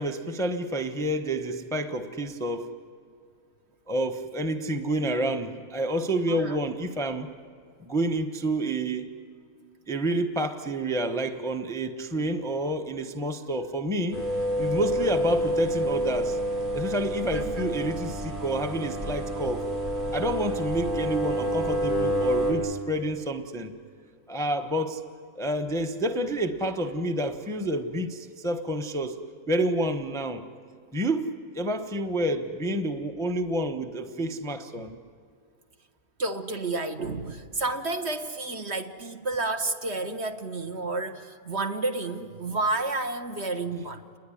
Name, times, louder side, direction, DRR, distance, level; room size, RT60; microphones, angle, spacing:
voice 1, 0.0-2.7 3.9-7.3 7.8-9.1 9.9-14.2 14.6-16.4 16.7-19.6 20.1-23.7 24.3-25.0 25.3-29.2 29.5-30.4 30.9-31.3 31.5-35.0, right 1 dB, 5° left, 6 dB, 0.8 m, -29 dB
voice 2, 6.3-6.6 17.3-17.7 36.2-44.1, right 2 dB, 50° right, 6 dB, 1.5 m, -31 dB
sound 1, 14.1-22.5, right 1 dB, 85° right, 7.7 m, -28 dB
28.5 x 21.0 x 9.9 m, 2.2 s
omnidirectional pair, 1.6 m